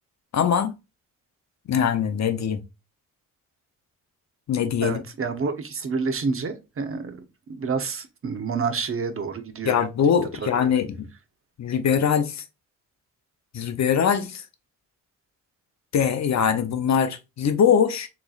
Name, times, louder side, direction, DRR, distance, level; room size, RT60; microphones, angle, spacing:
voice 1, 0.3-0.7 1.7-2.6 4.5-5.0 9.6-11.1 11.6-12.4 13.5-14.4 15.9-18.1, left 7 dB, 55° left, 0.7 m, -22 dB
voice 2, 4.8-7.2 7.5-9.8 10.4-10.7, right 5 dB, 40° right, 0.8 m, -28 dB
6.5 x 3.0 x 2.4 m
cardioid pair, 100°, 33 cm